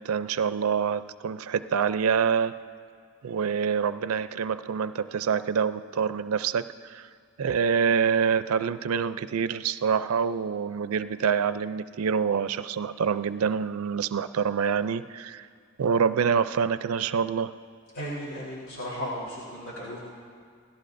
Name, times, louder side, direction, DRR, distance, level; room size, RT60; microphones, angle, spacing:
voice 1, 0.0-2.6 3.2-7.1 7.4-15.5 15.8-17.5, right 6 dB, 85° right, 13 dB, 0.4 m, -26 dB
voice 2, 17.9-20.0, equal, 70° left, -7 dB, 3.6 m, -35 dB
26.5 x 17.0 x 2.6 m, 2.1 s
head